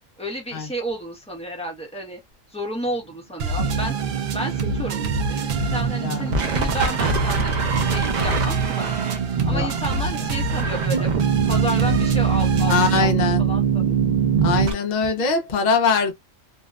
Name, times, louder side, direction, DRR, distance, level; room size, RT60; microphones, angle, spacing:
voice 1, 0.2-2.2 2.5-4.0 4.3-8.9 9.4-11.1 11.4-14.0 15.0-15.3, equal, 5° left, 0.7 m, -32 dB
sound 1, 3.4-13.0, right 3 dB, 85° right, 1.0 m, -28 dB
sound 2, 3.6-14.7, right 7 dB, 60° right, 0.4 m, -23 dB
voice 2, 12.7-13.4 14.4-16.1, left 5 dB, 50° left, 0.6 m, -22 dB
2.6 x 2.2 x 2.3 m
omnidirectional pair, 1.4 m